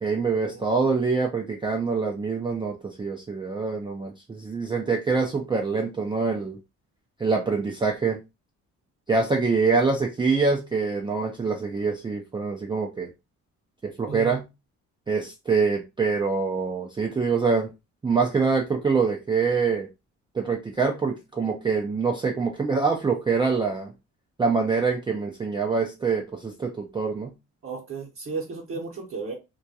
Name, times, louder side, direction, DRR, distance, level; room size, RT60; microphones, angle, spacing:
voice 1, 0.0-6.6 7.2-8.2 9.1-13.1 13.8-14.5 15.1-17.7 18.0-19.9 20.3-23.9 24.4-27.3, right 4 dB, 15° right, 0.4 m, -25 dB
voice 2, 14.1-14.4 27.6-29.3, right 4 dB, 45° right, 0.8 m, -34 dB
2.3 x 2.1 x 2.6 m
cardioid pair, 90°, 30 cm